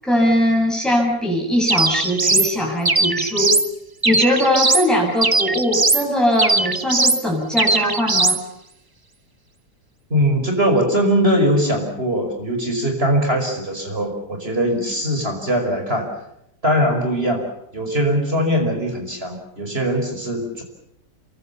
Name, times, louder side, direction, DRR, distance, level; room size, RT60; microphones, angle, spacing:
voice 1, 0.0-3.6 4.0-8.4, equal, ahead, -1 dB, 7.7 m, -20 dB
sound 1, 1.7-2.5 2.8-3.7 4.0-4.9 5.2-6.0 6.4-7.2 7.6-8.4, right 3 dB, 20° right, 0.6 m, -19 dB
voice 2, 10.1-16.1 16.6-17.4 17.7-20.6, equal, 35° right, 4 dB, 5.7 m, -21 dB
28.0 x 23.5 x 7.0 m, 0.78 s
omnidirectional pair, 1.7 m